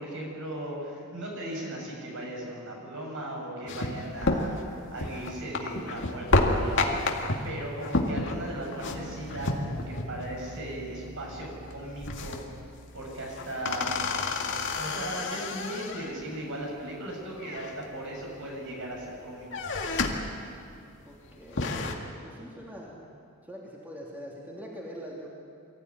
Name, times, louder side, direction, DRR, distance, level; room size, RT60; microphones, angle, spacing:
voice 1, 0.0-12.4 12.9-13.9 14.7-19.6, right 1 dB, 65° right, -1 dB, 6.9 m, -37 dB
sound 1, 3.7-10.3 10.6-10.7 11.0-11.4 11.7-12.6 13.0-16.2 17.4-18.2 18.7-19.1 19.4-20.3 20.7-20.8 21.3-21.9, left 2 dB, 60° left, 2.1 m, -30 dB
Bass guitar, 8.9-15.1, equal, 45° right, 1.5 m, -47 dB
voice 2, 21.0-23.0 23.4-25.3, equal, 10° right, -4 dB, 3.0 m, -43 dB
24.0 x 15.5 x 9.6 m, 2.5 s
head